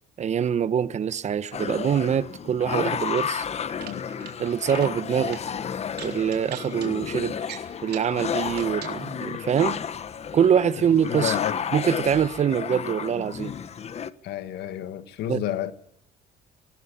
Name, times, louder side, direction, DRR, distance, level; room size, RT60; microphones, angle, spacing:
voice 1, 0.2-3.5 4.4-5.4 6.0-7.4 7.8-9.8 10.3-11.4 11.7-13.5 15.3-15.4, right 8 dB, 45° right, 0.9 m, -24 dB
sound 1, 1.5-14.1, left 7 dB, 40° left, 1.1 m, -32 dB
sound 2, 3.7-4.3 4.6-4.9 5.3-5.4 5.9-6.9 7.4-8.1 8.5-8.9, right 10 dB, 70° right, 3.7 m, -40 dB
voice 2, 11.1-11.6 14.2-15.7, left 11 dB, 80° left, 1.6 m, -30 dB
19.0 x 19.0 x 8.6 m
cardioid pair, 110°, 17 cm